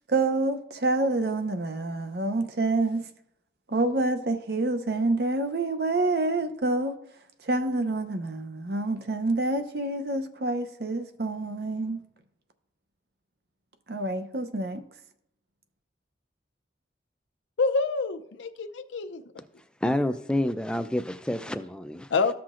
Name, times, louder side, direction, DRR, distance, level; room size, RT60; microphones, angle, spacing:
voice 1, 0.1-3.0 3.7-7.0 7.4-12.0 13.9-14.8, right 2 dB, 60° right, 0.7 m, -27 dB
voice 2, 17.6-19.2 22.1-22.3, left 4 dB, 85° left, 0.6 m, -27 dB
voice 3, 19.8-22.1, left 1 dB, 5° left, 0.3 m, -28 dB
14.0 x 5.8 x 2.5 m
head